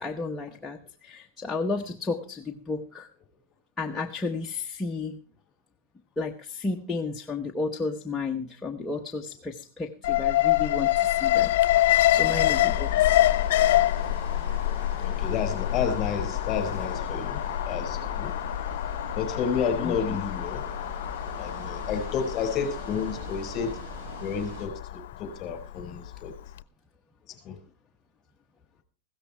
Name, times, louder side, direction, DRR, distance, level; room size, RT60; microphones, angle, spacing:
voice 1, 0.0-3.1 3.8-5.2 6.2-11.5 11.9-13.2 19.8-20.2, left 3 dB, 10° left, 1.0 m, -33 dB
Alarm, 10.0-26.1 26.5-26.6, left 14 dB, 75° left, 0.6 m, -26 dB
sound 1, 12.2-24.7, right 3 dB, 65° right, 4.7 m, -41 dB
voice 2, 15.0-18.3 19.2-20.6 21.4-23.7 24.2-26.3 27.5-27.6, left 6 dB, 35° left, 5.3 m, -31 dB
16.0 x 13.5 x 4.5 m
supercardioid pair, 150°, 0 cm